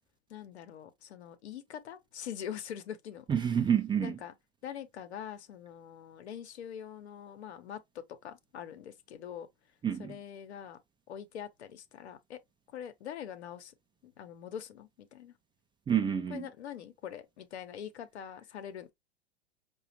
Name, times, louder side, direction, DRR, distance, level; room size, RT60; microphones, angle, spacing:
voice 1, 0.3-3.2 4.0-4.3 4.6-9.5 10.0-10.8 11.1-12.4 12.7-13.7 14.0-15.3 16.3-18.9, left 9 dB, 75° left, 0.9 m, -43 dB
voice 2, 3.3-4.2 9.8-10.1 15.9-16.4, right 8 dB, 15° right, 0.4 m, -28 dB
4.9 x 2.4 x 2.8 m
hypercardioid pair, 100°, 34 cm